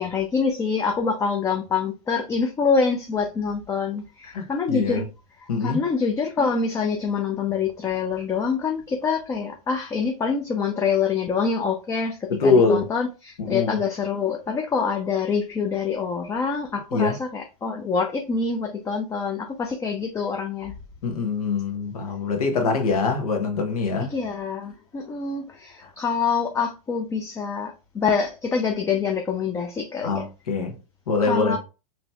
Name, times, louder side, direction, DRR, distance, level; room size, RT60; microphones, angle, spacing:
voice 1, 0.0-5.1 5.4-20.7 24.1-30.3 31.2-31.6, left 5 dB, 15° left, 0.4 m, -26 dB
voice 2, 4.2-5.0 5.5-5.8 12.4-12.9 13.4-13.8 16.9-17.2 21.0-24.1 25.8-25.9 30.0-30.8 31.1-31.5, left 4 dB, 80° left, 1.2 m, -23 dB
3.9 x 3.0 x 2.3 m
hypercardioid pair, 115°, 19 cm